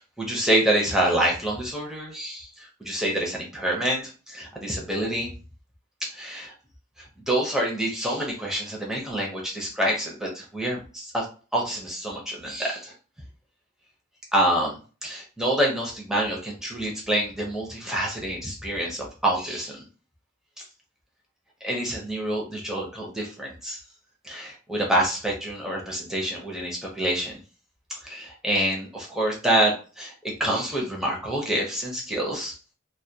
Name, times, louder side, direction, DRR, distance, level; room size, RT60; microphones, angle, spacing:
voice 1, 0.0-5.3 6.0-6.5 7.3-11.3 11.5-12.9 14.3-19.8 21.6-23.8 24.2-27.4 28.0-32.5, right 1 dB, 5° right, -2 dB, 0.5 m, -27 dB
2.2 x 2.1 x 2.7 m, 0.37 s
head